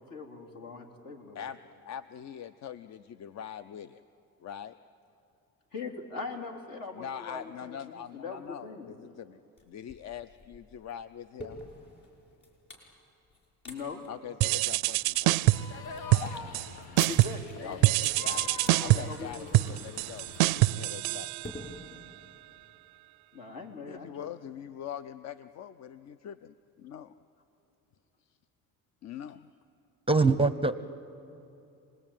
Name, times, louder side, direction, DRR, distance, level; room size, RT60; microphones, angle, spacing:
voice 1, 0.0-1.4 5.7-8.9 13.6-14.0 17.1-18.1 18.7-19.7 23.3-24.3, left 4 dB, 65° left, 2 dB, 3.5 m, -41 dB
voice 2, 1.3-4.0 4.4-4.8 7.0-9.4 9.7-11.6 14.1-15.4 17.6-21.3 23.8-27.1 29.0-29.5, left 9 dB, 50° left, 13 dB, 0.6 m, -43 dB
sound 1, 9.6-9.7 9.9-12.9 13.3-13.8 14.0-14.1 14.7-16.6 17.0-17.5 17.9-18.8 19.1-19.4 19.7-19.9 20.2-20.5 21.4-22.2, left 2 dB, 30° left, 5.9 m, -46 dB
sound 2, 14.4-15.8 16.1-16.7 17.0-17.5 17.8-21.8, right 19 dB, 85° right, 0.5 m, -25 dB
sound 3, 15.5-20.6, left 5 dB, 85° left, 1.5 m, -43 dB
voice 3, 30.1-30.8, right 3 dB, 15° right, 13 dB, 0.6 m, -23 dB
27.5 x 20.0 x 9.0 m, 2.8 s
cardioid pair, 115°, 36 cm